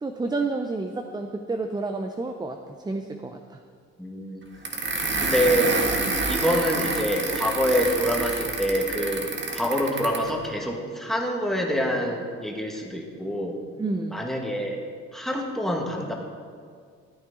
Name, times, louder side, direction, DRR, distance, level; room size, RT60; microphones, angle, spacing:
voice 1, 0.0-3.6 6.0-6.1 13.8-14.2, right 3 dB, 15° right, 5 dB, 0.6 m, -30 dB
voice 2, 4.0-4.4 5.1-5.8 6.3-9.3 9.5-13.6 14.1-14.8 15.1-16.1, equal, ahead, 0 dB, 1.7 m, -26 dB
sound 1, 4.6-10.3, right 3 dB, 40° right, 1.6 m, -28 dB
13.5 x 9.4 x 3.8 m, 2.1 s
cardioid pair, 90°, 30 cm